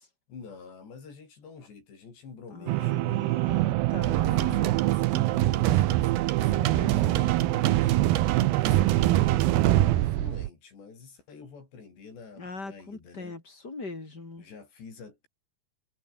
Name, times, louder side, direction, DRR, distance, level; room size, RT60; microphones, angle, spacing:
voice 1, 0.3-3.3 4.1-8.0 8.4-13.4 14.4-15.3, left 5 dB, 90° left, 8.9 m, -47 dB
voice 2, 2.5-4.7 6.5-7.5 12.4-14.5, left 3 dB, 25° left, 4.7 m, -41 dB
sound 1, 2.7-10.0, right 21 dB, 85° right, 2.7 m, -27 dB
sound 2, 3.4-10.3, right 9 dB, 50° right, 2.2 m, -40 dB
sound 3, 4.0-10.5, right 14 dB, 70° right, 2.9 m, -26 dB
omnidirectional pair, 4.8 m